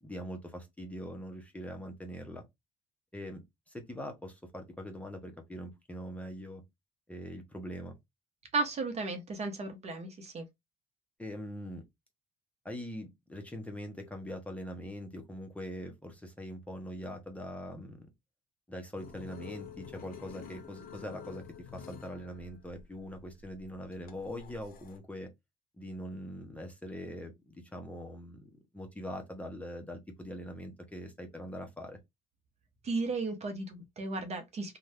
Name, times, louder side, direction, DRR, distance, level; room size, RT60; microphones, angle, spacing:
voice 1, 0.0-2.4 3.1-6.6 7.1-8.0 11.2-11.8 12.6-18.1 18.7-21.4 21.7-25.3 25.8-32.0, equal, 10° left, 0.8 m, -42 dB
voice 2, 8.5-10.4 32.8-34.8, right 3 dB, 40° right, 0.8 m, -34 dB
sound 1, 19.0-25.0, left 8 dB, 60° left, 0.6 m, -49 dB
2.6 x 2.3 x 3.3 m
cardioid pair, 110°, 17 cm